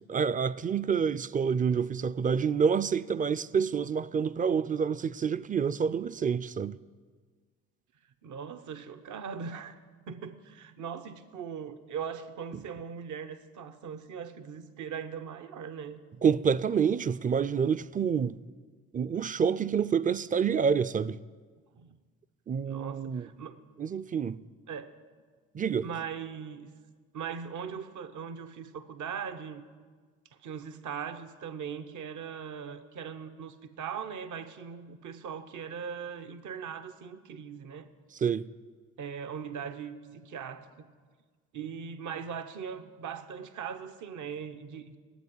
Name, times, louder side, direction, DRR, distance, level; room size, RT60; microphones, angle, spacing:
voice 1, 0.1-6.8 16.2-18.4 18.9-21.2 22.5-23.3 23.8-24.4 25.5-25.9 38.2-38.4, right 6 dB, 25° right, 0.4 m, -27 dB
voice 2, 8.2-9.8 10.1-16.0 21.7-22.0 22.6-23.6 24.7-24.9 25.8-26.7 27.1-29.6 30.4-37.9 39.0-40.9 41.5-45.0, right 7 dB, 65° right, 0.9 m, -40 dB
9.4 x 7.9 x 9.3 m
supercardioid pair, 55°, 32 cm